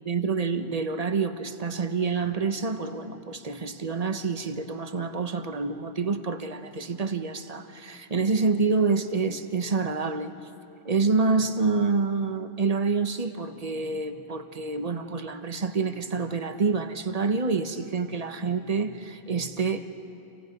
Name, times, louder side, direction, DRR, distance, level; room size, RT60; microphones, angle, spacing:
voice 1, 0.0-10.3 10.8-19.8, right 4 dB, 35° right, 8 dB, 1.1 m, -27 dB
29.0 x 28.0 x 5.4 m, 2.7 s
omnidirectional pair, 1.2 m